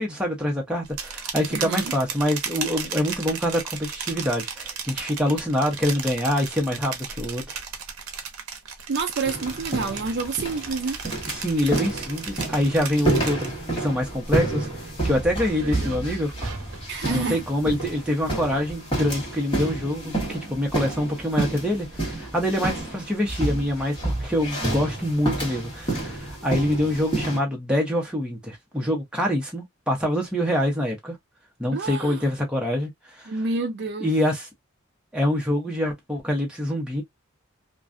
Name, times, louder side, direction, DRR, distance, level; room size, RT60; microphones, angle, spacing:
voice 1, 0.0-7.6 11.3-14.7 15.0-16.3 17.1-31.1 31.6-32.9 33.2-33.3 34.0-34.5 35.1-37.0, left 1 dB, 5° right, 0.8 m, -25 dB
sound 1, 0.8-13.8 14.2-14.6 15.0-16.9, right 6 dB, 80° right, 0.7 m, -35 dB
voice 2, 1.5-1.9 8.9-11.0 16.9-17.4 31.7-32.3 33.3-34.1, right 4 dB, 50° right, 0.4 m, -28 dB
sound 2, 9.2-27.4, right 2 dB, 20° left, 1.2 m, -30 dB
2.4 x 2.2 x 2.4 m
head